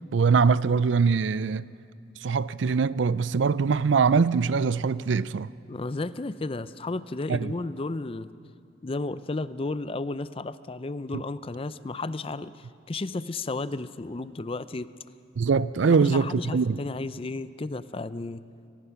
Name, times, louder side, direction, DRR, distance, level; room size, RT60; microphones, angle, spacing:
voice 1, 0.1-1.7 2.2-5.5 7.3-7.5 11.1-11.2 15.4-16.8, right 5 dB, 70° right, 0.4 m, -23 dB
voice 2, 5.7-8.3 8.8-14.9 15.9-18.4, left 2 dB, 30° left, 0.5 m, -33 dB
25.0 x 19.0 x 5.8 m
head